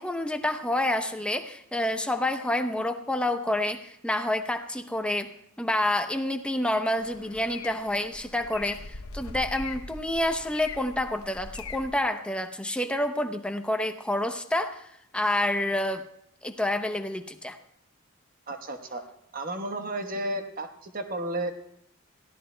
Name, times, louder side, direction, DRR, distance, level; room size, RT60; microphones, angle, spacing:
voice 1, 0.0-5.3 5.6-16.0 16.4-17.6, left 1 dB, 5° left, 6 dB, 0.7 m, -28 dB
sound 1, 7.0-12.0, left 4 dB, 85° left, 0.8 m, -41 dB
voice 2, 18.5-19.0 19.3-21.5, right 1 dB, 40° right, 6 dB, 1.1 m, -33 dB
22.5 x 15.5 x 2.2 m, 0.74 s
head